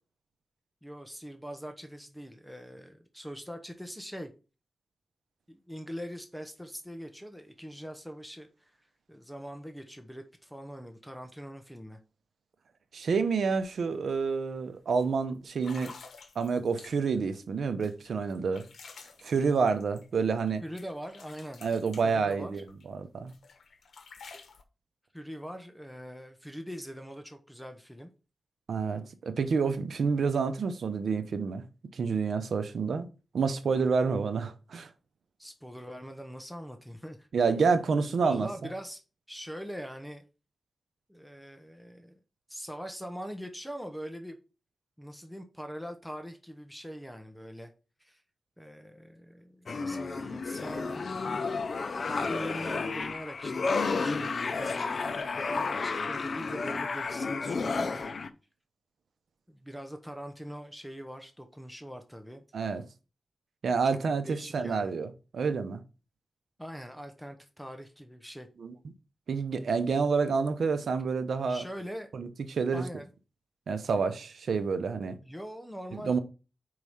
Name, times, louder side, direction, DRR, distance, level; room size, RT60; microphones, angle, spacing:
voice 1, 0.8-4.3 5.5-8.8 9.1-12.0 20.6-21.7 22.0-22.6 25.1-28.1 35.4-37.3 38.2-39.0 39.3-40.2 41.1-42.1 42.5-44.4 45.0-47.7 48.0-48.2 48.6-51.1 52.1-55.1 55.8-58.1 59.5-62.4 63.8-64.0 64.3-64.9 66.6-68.5 71.5-72.1 72.7-73.1 75.2-76.2, equal, ahead, 0.9 m, -42 dB
voice 2, 12.9-15.9 16.4-18.6 19.2-20.6 21.6-23.3 28.7-31.6 31.9-33.1 33.3-34.9 37.3-38.5 62.5-62.8 63.6-65.8 68.6-68.7 69.3-71.6 72.1-72.9 73.7-75.2 76.0-76.2, right 5 dB, 80° right, 0.8 m, -28 dB
sound 1, 13.6-13.7 14.1-14.4 15.0-15.1 15.6-17.2 17.8-20.5 20.8-22.9 23.3-24.6, left 4 dB, 85° left, 1.0 m, -51 dB
sound 2, 49.7-58.3, left 4 dB, 60° left, 0.6 m, -32 dB
4.8 x 4.7 x 5.6 m
cardioid pair, 75°, 0 cm